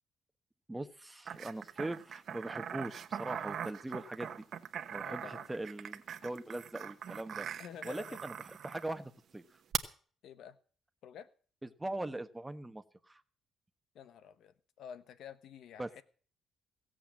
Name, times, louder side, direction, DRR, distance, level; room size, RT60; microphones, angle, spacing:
voice 1, 0.7-4.3 4.9-9.4 11.8-13.2 15.8-15.9, right 2 dB, 10° right, 10 dB, 1.1 m, -41 dB
sound 1, 1.3-8.9 9.7-9.8, right 8 dB, 60° right, 1.1 m, -41 dB
voice 2, 5.0-5.5 7.6-8.2 10.2-10.6 11.0-11.3 13.9-16.0, left 8 dB, 75° left, 14 dB, 1.1 m, -50 dB
16.5 x 7.8 x 7.4 m, 0.43 s
cardioid pair, 95°, 0 cm